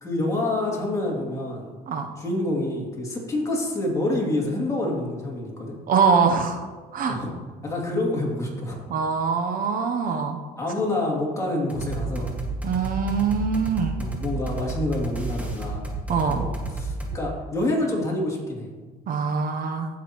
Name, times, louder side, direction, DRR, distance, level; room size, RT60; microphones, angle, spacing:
voice 1, 0.0-1.7 2.2-5.8 7.1-7.3 7.6-8.8 10.0-10.2 10.6-12.3 14.0-15.9 16.2-18.7, left 1 dB, 20° left, -3 dB, 2.6 m, -27 dB
voice 2, 5.9-6.7 6.9-7.2 8.9-10.4 12.6-14.0 16.1-16.5 19.1-19.9, right 5 dB, 55° right, 5 dB, 0.8 m, -23 dB
sound 1, 11.7-17.2, right 3 dB, 10° right, 1.7 m, -31 dB
15.5 x 6.1 x 3.0 m, 1.4 s
cardioid pair, 110°, 17 cm